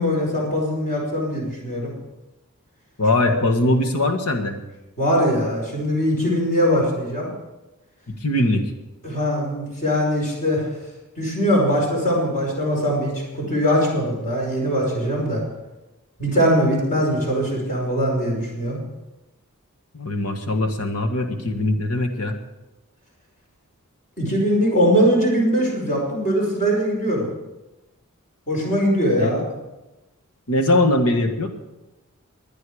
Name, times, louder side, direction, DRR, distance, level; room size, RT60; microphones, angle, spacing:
voice 1, 0.0-1.9 5.0-7.3 9.0-10.7 11.2-15.4 16.2-18.8 24.2-27.3 28.5-29.4, equal, 35° left, -2 dB, 5.1 m, -21 dB
voice 2, 3.0-4.6 8.1-8.6 19.9-22.4 29.2-29.4 30.5-31.5, left 1 dB, 85° left, 6 dB, 1.7 m, -21 dB
21.0 x 9.6 x 5.0 m, 1.0 s
head